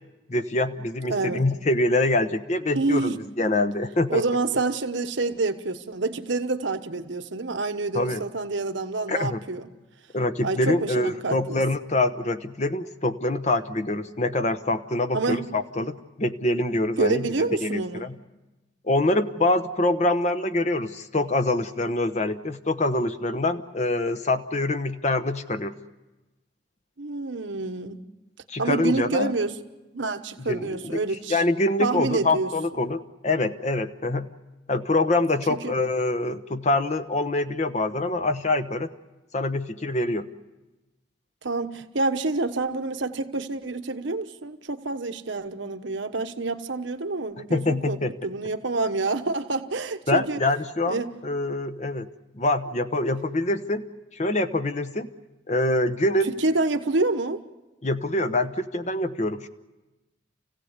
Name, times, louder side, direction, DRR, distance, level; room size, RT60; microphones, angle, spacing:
voice 1, 0.3-4.2 7.9-8.2 9.1-9.4 10.1-17.3 17.6-18.2 18.8-25.7 28.5-29.3 30.4-31.0 31.3-34.3 34.7-38.9 39.3-40.3 47.5-48.1 50.1-52.1 52.3-53.9 54.1-55.1 55.5-56.3 57.8-59.5, left 2 dB, 35° left, 10 dB, 1.0 m, -25 dB
voice 2, 1.1-1.5 2.7-3.2 4.1-9.7 10.4-11.6 15.1-15.5 17.0-18.1 27.0-28.0 28.6-29.5 29.9-31.4 31.8-32.5 35.5-35.7 41.4-48.0 48.2-50.4 50.8-51.1 56.3-57.4, right 3 dB, 80° right, 7 dB, 1.1 m, -27 dB
29.0 x 16.0 x 8.2 m, 1.1 s
head